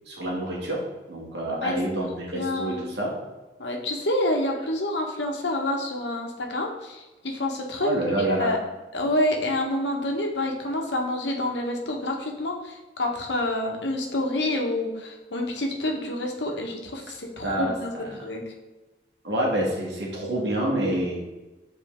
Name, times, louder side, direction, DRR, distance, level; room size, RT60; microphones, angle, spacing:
voice 1, 0.1-0.8 1.1-3.1 7.8-8.5 17.4-18.3 19.2-21.2, right 1 dB, 80° right, -2 dB, 2.0 m, -27 dB
voice 2, 2.3-2.8 3.6-7.9 8.4-8.6 8.9-17.9 18.2-18.4, left 1 dB, 90° left, 1 dB, 1.2 m, -28 dB
7.8 x 4.4 x 3.6 m, 1.1 s
head